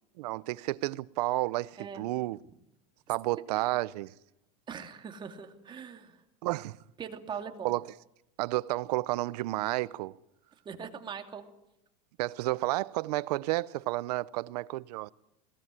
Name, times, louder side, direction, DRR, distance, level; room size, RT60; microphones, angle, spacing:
voice 1, 0.2-2.4 3.1-4.1 6.4-6.8 7.6-7.9 8.4-10.1 12.2-15.1, right 19 dB, 70° right, 0.8 m, -31 dB
voice 2, 4.7-6.2 7.0-7.7 10.6-11.4, right 7 dB, 20° right, 2.7 m, -41 dB
21.5 x 18.0 x 9.9 m
supercardioid pair, 145°, 21 cm